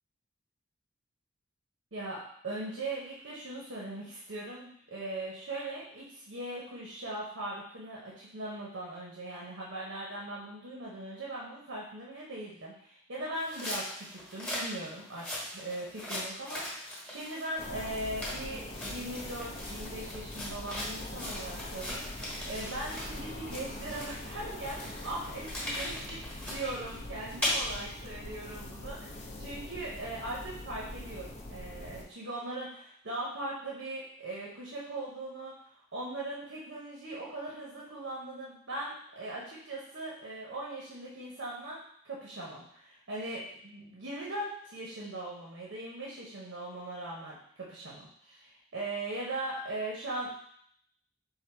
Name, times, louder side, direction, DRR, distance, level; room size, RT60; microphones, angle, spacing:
voice 1, 1.9-35.5 35.9-50.5, right 1 dB, 85° right, -4 dB, 0.9 m, -40 dB
sound 1, 13.3-23.2 23.4-27.5, left 1 dB, 10° left, 1.0 m, -39 dB
sound 2, 17.6-32.0, left 1 dB, 35° left, 0.5 m, -43 dB
3.8 x 2.6 x 4.4 m, 0.66 s
head